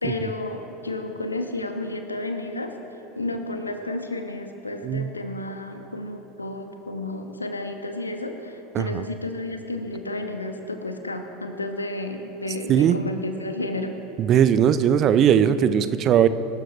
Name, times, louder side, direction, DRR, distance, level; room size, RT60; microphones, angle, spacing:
voice 1, 0.0-2.7 3.2-13.9, left 2 dB, 85° left, 6 dB, 1.2 m, -31 dB
voice 2, 14.2-16.3, right 9 dB, 40° right, 13 dB, 0.6 m, -19 dB
24.0 x 12.5 x 3.3 m, 2.9 s
figure-of-eight pair, 80°, 0 cm